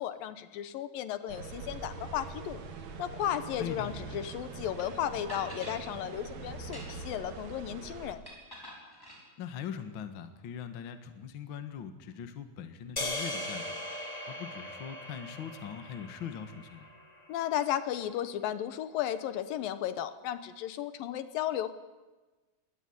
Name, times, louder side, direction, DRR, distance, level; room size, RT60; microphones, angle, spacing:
voice 1, 0.0-2.6 3.0-8.2 17.3-21.7, left 11 dB, 75° left, 12 dB, 2.6 m, -34 dB
sound 1, 1.3-8.1, right 4 dB, 55° right, 3.0 m, -43 dB
voice 2, 3.6-3.9 9.4-13.8 14.3-16.9, left 8 dB, 50° left, 9 dB, 1.7 m, -41 dB
sound 2, 4.8-4.9 5.3-5.8 6.6-7.2 8.2-9.2, equal, 5° left, 5.1 m, -46 dB
sound 3, 13.0-17.3, left 1 dB, 25° left, 0.8 m, -39 dB
22.0 x 18.5 x 9.5 m, 1.2 s
omnidirectional pair, 4.2 m